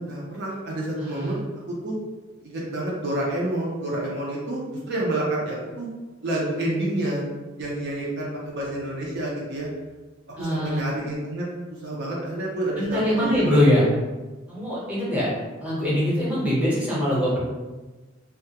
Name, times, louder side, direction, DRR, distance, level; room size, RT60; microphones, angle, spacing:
voice 1, 0.0-1.4 1.7-2.0 2.4-4.6 4.9-5.9 6.2-7.2 7.6-9.7 10.4-11.5 11.8-13.4, right 1 dB, 55° right, -4 dB, 0.5 m, -28 dB
voice 2, 1.0-1.4 10.3-10.8 12.8-13.8 14.5-15.3 15.6-17.4, left 1 dB, 5° right, -8 dB, 0.7 m, -23 dB
2.2 x 2.0 x 2.8 m, 1.2 s
head